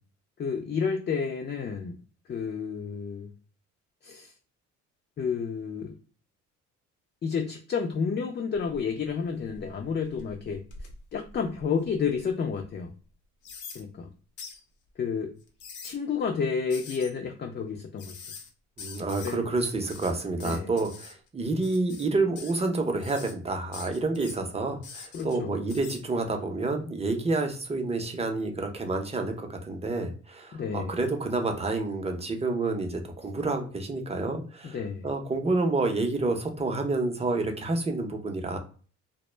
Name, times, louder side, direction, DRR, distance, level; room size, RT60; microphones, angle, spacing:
voice 1, 0.4-2.0 2.3-3.3 4.0-4.3 5.2-5.9 7.2-10.6 11.1-12.9 13.7-14.1 15.0-15.4 15.8-18.1 19.2-19.4 20.4-20.7 25.1-25.5 30.5-31.0 34.6-35.1, left 6 dB, 35° left, 0.4 m, -30 dB
sound 1, 8.5-9.0 9.5-12.1 12.6-12.7 13.4-13.8 14.4-14.6 15.4-16.0 16.7-17.1 18.0-18.5 18.8-19.4 19.6-21.1 21.6-22.1 22.4-22.7 23.0-23.3 23.7-24.4 24.8-25.4 25.7-26.0, left 5 dB, 85° left, 0.7 m, -44 dB
voice 2, 18.8-34.8 35.0-38.6, right 3 dB, 20° right, 0.6 m, -29 dB
2.1 x 2.0 x 3.1 m
cardioid pair, 90°, 30 cm